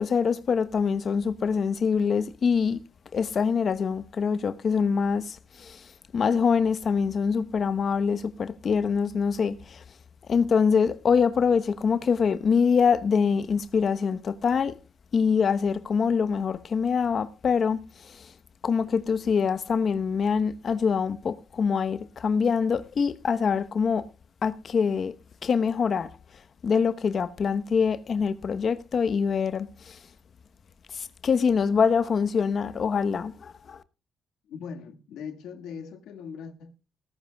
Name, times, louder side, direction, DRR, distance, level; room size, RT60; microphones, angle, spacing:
voice 1, 0.0-2.8 3.1-9.8 10.3-14.8 15.1-18.3 18.6-24.1 24.4-25.1 25.4-26.1 26.6-30.0 30.9-33.8, left 6 dB, 50° left, 1.0 m, -24 dB
voice 2, 34.5-36.7, left 6 dB, 85° left, 1.8 m, -40 dB
19.0 x 14.0 x 2.3 m
cardioid pair, 90°, 0 cm